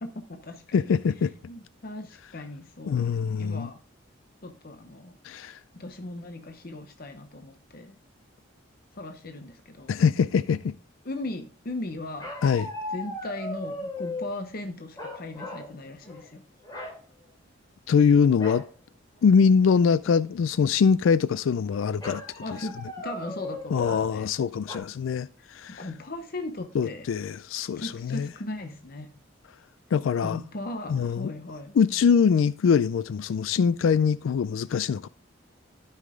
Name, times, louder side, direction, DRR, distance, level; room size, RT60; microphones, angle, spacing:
voice 1, 0.0-1.0 1.5-3.8 4.4-5.2 5.7-8.0 8.9-10.0 11.0-12.3 12.9-16.4 22.4-24.3 25.4-27.1 27.8-29.1 30.2-31.8, left 2 dB, 50° left, 0.8 m, -38 dB
voice 2, 0.7-1.3 2.9-3.7 5.2-5.6 9.9-10.7 12.4-12.7 17.9-18.6 19.2-22.2 23.7-25.9 26.7-28.3 29.9-30.4 30.9-31.3 31.8-35.1, left 6 dB, 80° left, 0.3 m, -23 dB
sound 1, 12.2-14.3 15.0-15.7 16.0-16.3 16.6-17.0 18.4-18.7 19.2-19.3 19.6-20.1 22.0-24.1 24.7-24.8, left 2 dB, 20° left, 3.4 m, -37 dB
13.0 x 5.6 x 3.6 m
head